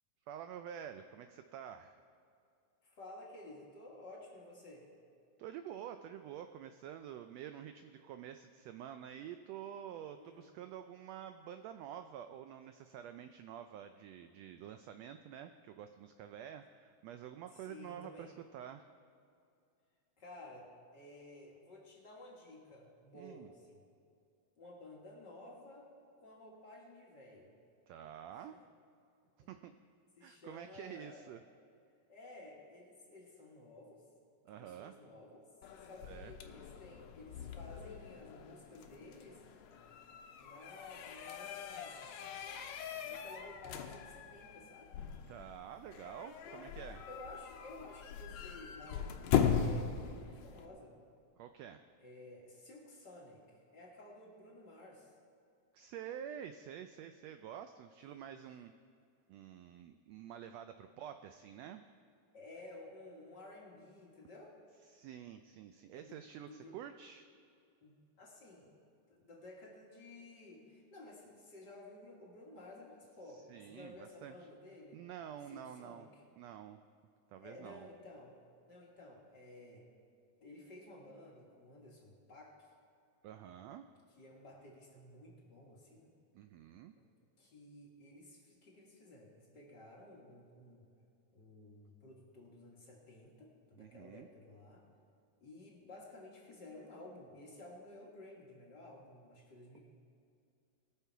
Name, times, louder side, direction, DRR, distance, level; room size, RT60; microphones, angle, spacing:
voice 1, 0.3-2.0 5.4-18.8 23.1-23.5 27.9-28.5 29.5-29.7 30.2-31.4 34.4-35.0 36.0-36.3 45.3-47.0 51.4-51.8 55.7-58.7 59.3-61.8 64.9-67.3 73.3-74.4 74.9-76.1 76.4-76.8 77.3-77.9 83.2-83.8 86.3-86.9 93.8-94.3, right 9 dB, 85° right, 8 dB, 1.5 m, -48 dB
voice 2, 2.8-4.9 10.2-10.5 17.5-18.3 20.2-23.8 24.6-25.9 26.2-27.5 28.3-28.6 29.4-29.5 30.2-31.3 32.1-34.0 34.6-35.5 35.8-39.4 40.4-42.2 43.0-44.9 46.4-46.6 47.1-50.9 52.0-55.1 58.0-58.3 60.8-60.9 62.3-64.6 65.9-66.8 67.8-68.7 69.1-75.0 75.5-76.0 77.4-78.4 78.7-79.9 80.4-82.7 84.2-86.1 87.0-87.1 87.4-90.9 91.3-94.9 95.4-99.8, left 2 dB, 40° left, -3 dB, 2.0 m, -54 dB
sound 1, 35.6-50.7, left 8 dB, 70° left, 1.9 m, -39 dB
20.5 x 6.9 x 4.6 m, 2.4 s
omnidirectional pair, 3.5 m